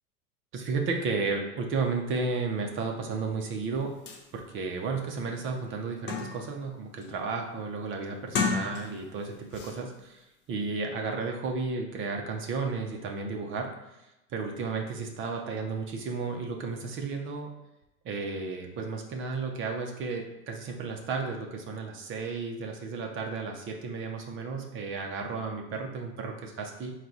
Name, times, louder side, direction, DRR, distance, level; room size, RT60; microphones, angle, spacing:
voice 1, 0.5-3.9 4.3-10.2 10.5-13.7 14.3-17.5 18.0-26.9, right 4 dB, 25° right, 2 dB, 0.5 m, -33 dB
sound 1, 3.7-3.8 4.1-4.2 4.8-4.9 5.3-6.6 7.0-7.4 8.2-9.2 9.5-9.8, left 5 dB, 25° left, 0.4 m, -33 dB
4.6 x 2.3 x 3.9 m, 0.95 s
hypercardioid pair, 110°, 46 cm